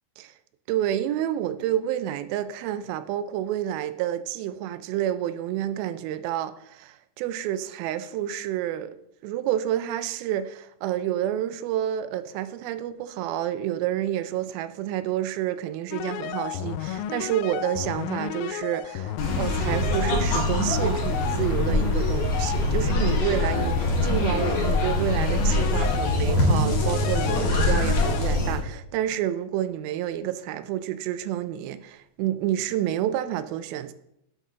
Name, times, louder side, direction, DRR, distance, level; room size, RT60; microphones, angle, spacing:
voice 1, 0.7-9.0 9.2-33.9, right 11 dB, 90° right, 2.4 m, -29 dB
sound 1, 15.9-28.2, left 10 dB, 85° left, 2.3 m, -32 dB
sound 2, 19.2-28.6, left 1 dB, 55° left, 2.6 m, -24 dB
10.5 x 5.6 x 3.6 m
omnidirectional pair, 4.2 m